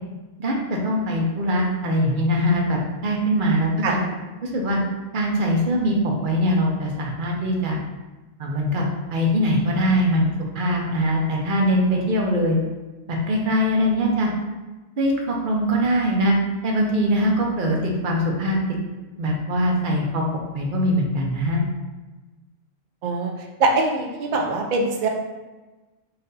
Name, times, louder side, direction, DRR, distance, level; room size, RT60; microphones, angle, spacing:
voice 1, 0.4-4.0 4.4-4.8 5.1-7.8 8.4-8.8 9.1-12.6 13.1-14.3 15.0-16.3 16.6-18.6 19.2-20.2 20.5-21.6, equal, 50° right, -1 dB, 0.7 m, -22 dB
voice 2, 23.6-25.1, right 3 dB, 85° right, 2 dB, 0.4 m, -22 dB
4.1 x 2.5 x 3.9 m, 1.2 s
omnidirectional pair, 1.4 m